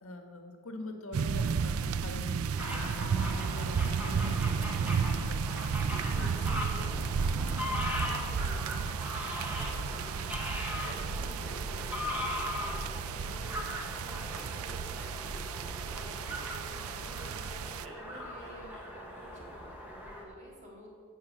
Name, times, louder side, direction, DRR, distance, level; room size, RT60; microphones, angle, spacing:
voice 1, 0.0-5.7 6.9-7.1, left 1 dB, 75° left, 5 dB, 1.8 m, -44 dB
sound 1, 1.1-17.9, right 6 dB, 80° right, 0.4 m, -33 dB
sound 2, 2.6-20.2, left 1 dB, 5° right, 2.0 m, -40 dB
voice 2, 5.8-20.9, equal, 35° right, -4 dB, 3.7 m, -51 dB
sound 3, 10.8-12.6 14.3-16.1 17.7-18.9 19.1-19.6, right 1 dB, 60° right, 3.7 m, -50 dB
16.0 x 7.5 x 7.1 m, 2.4 s
head